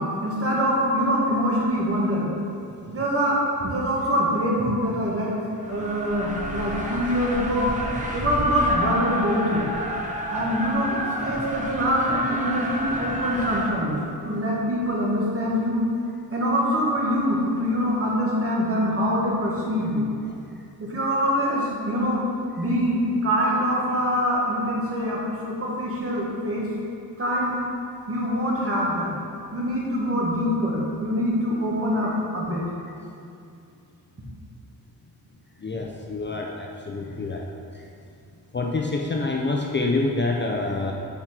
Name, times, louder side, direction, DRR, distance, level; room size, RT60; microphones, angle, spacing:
voice 1, 0.0-2.3 2.9-5.3 5.7-7.7 8.1-9.7 10.3-15.8 16.3-20.1 20.8-22.2 22.6-26.7 27.2-27.5 28.1-29.1 29.5-32.6, equal, 35° right, -5 dB, 1.7 m, -24 dB
sound 1, 5.6-13.7, right 1 dB, 20° right, 0.9 m, -30 dB
voice 2, 35.6-37.4 38.5-40.9, left 3 dB, 30° left, -1 dB, 0.5 m, -26 dB
9.8 x 4.6 x 4.4 m, 2.5 s
wide cardioid pair, 145°, 38 cm